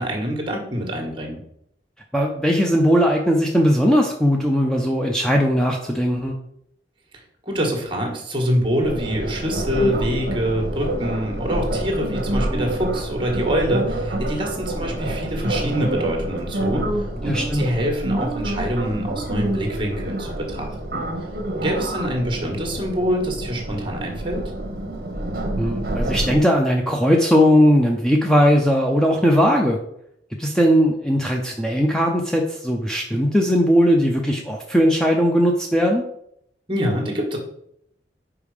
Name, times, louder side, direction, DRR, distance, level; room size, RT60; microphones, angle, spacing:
voice 1, 0.0-1.4 7.4-16.8 17.2-21.1 21.6-24.4 36.7-37.4, equal, 30° right, 2 dB, 1.6 m, -25 dB
voice 2, 2.1-6.3 17.2-17.7 25.6-29.8 30.4-36.0, equal, 5° left, 1 dB, 0.6 m, -18 dB
sound 1, 8.8-26.4, right 1 dB, 55° right, 1.0 m, -27 dB
5.3 x 4.8 x 4.9 m, 0.72 s
head